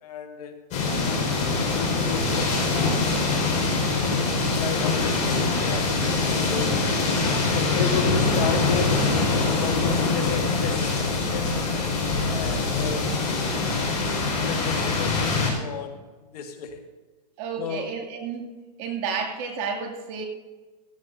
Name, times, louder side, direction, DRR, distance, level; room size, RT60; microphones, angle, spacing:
voice 1, 0.0-0.6 1.4-4.0 4.4-6.9 7.5-11.6 12.2-13.2 14.2-15.3 15.5-16.8 17.6-17.9, left 6 dB, 65° left, 4 dB, 1.9 m, -34 dB
sound 1, 0.7-15.5, left 3 dB, 30° left, 4.9 m, -24 dB
voice 2, 17.4-18.5 18.8-20.3, right 6 dB, 40° right, 2 dB, 2.5 m, -31 dB
17.0 x 15.5 x 2.7 m, 1.2 s
hypercardioid pair, 135°, 21 cm